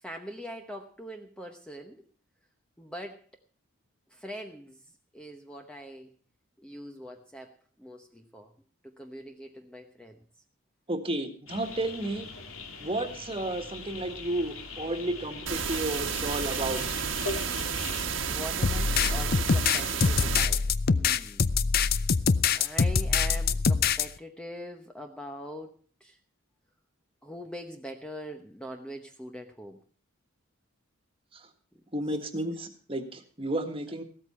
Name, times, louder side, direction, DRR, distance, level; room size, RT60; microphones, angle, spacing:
voice 1, 0.0-2.0 2.8-3.2 4.1-4.8 5.1-6.1 6.6-7.5 7.8-8.5 8.8-10.2 18.2-21.6 21.9-22.1 22.5-25.7 26.0-26.2 27.2-29.8, equal, 5° left, 4 dB, 0.9 m, -42 dB
voice 2, 10.9-12.3 12.8-17.0 31.3-31.5 31.9-34.0, right 1 dB, 25° right, 7 dB, 1.7 m, -32 dB
sound 1, 11.5-18.1, left 4 dB, 75° left, 2.4 m, -41 dB
sound 2, 15.5-20.5, right 6 dB, 65° right, 1.5 m, -31 dB
sound 3, 18.6-24.1, left 5 dB, 45° left, 0.6 m, -24 dB
16.0 x 13.5 x 4.3 m, 0.42 s
head